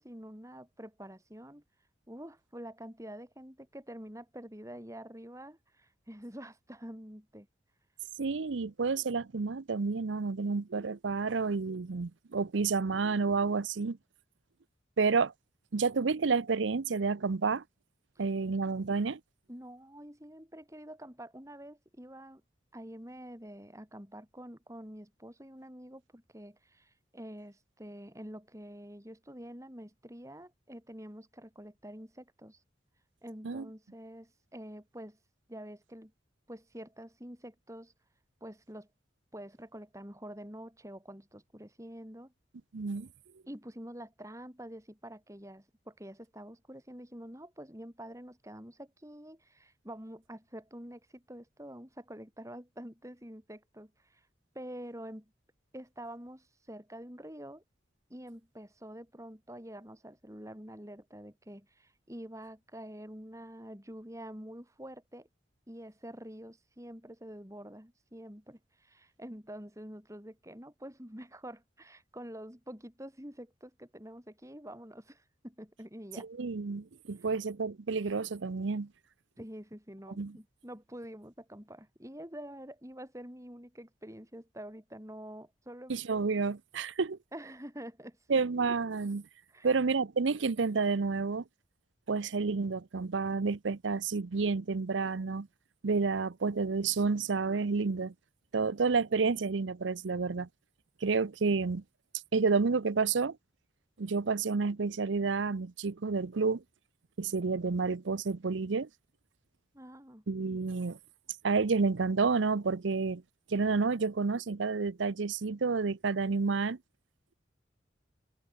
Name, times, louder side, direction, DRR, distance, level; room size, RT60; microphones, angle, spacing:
voice 1, 0.0-1.6 2.1-7.5 19.5-22.4 22.7-32.6 33.2-35.2 35.5-36.1 36.5-37.9 38.4-38.9 39.3-42.3 43.5-54.2 54.5-55.3 55.7-57.6 58.1-65.3 65.7-76.3 79.4-86.0 87.3-88.4 89.5-89.8 109.7-110.2, equal, 15° right, 6.9 m, -47 dB
voice 2, 8.2-14.0 15.0-15.3 15.7-17.6 18.2-19.2 33.4-33.6 42.7-43.1 76.2-78.9 80.2-80.4 85.9-87.2 88.3-89.2 89.6-91.4 92.1-95.5 95.8-98.1 98.5-100.5 101.0-101.8 102.3-103.4 104.0-106.6 107.2-108.9 110.3-111.0 111.4-113.2 113.5-116.8, right 4 dB, 80° right, 0.7 m, -30 dB
head